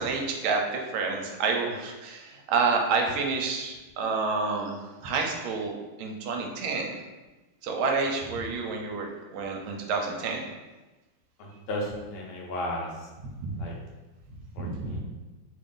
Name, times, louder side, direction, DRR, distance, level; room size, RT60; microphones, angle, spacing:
voice 1, 0.0-4.8 5.0-5.7 6.0-7.0 7.6-10.5 13.4-13.6 14.6-15.0, right 4 dB, 80° right, 2 dB, 1.4 m, -29 dB
voice 2, 11.4-12.9 13.6-13.7 14.6-15.0, left 1 dB, 80° left, -2 dB, 1.5 m, -34 dB
3.6 x 2.5 x 3.6 m, 1.1 s
omnidirectional pair, 2.4 m